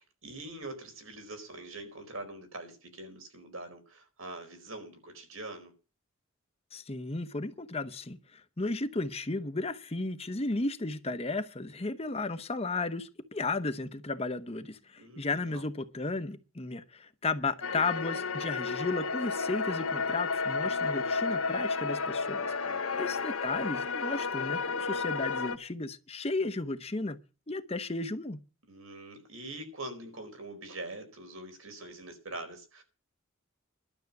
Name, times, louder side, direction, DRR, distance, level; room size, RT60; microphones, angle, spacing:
voice 1, 0.0-5.7 15.0-15.7 22.6-23.2 28.7-32.8, right 2 dB, 80° right, 4.5 m, -44 dB
voice 2, 6.7-22.5 23.0-27.2 27.5-28.4, left 3 dB, 30° left, 1.0 m, -34 dB
sound 1, 17.6-25.6, left 4 dB, 90° left, 1.3 m, -32 dB
12.0 x 7.3 x 9.4 m
head